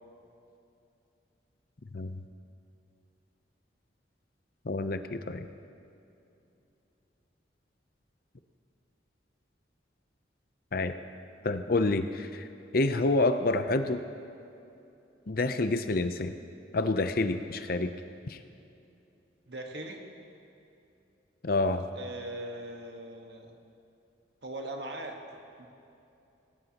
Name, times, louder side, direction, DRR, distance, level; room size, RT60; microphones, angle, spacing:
voice 1, 4.6-5.5 10.7-10.9 11.4-12.5 12.7-14.0 15.3-16.3 16.7-17.9 18.3-18.4 21.4-21.8, left 2 dB, 55° left, 9 dB, 0.7 m, -28 dB
voice 2, 19.5-20.0 21.9-23.6 24.4-25.7, right 1 dB, 65° right, 2 dB, 1.5 m, -40 dB
18.5 x 17.5 x 3.0 m, 2.8 s
head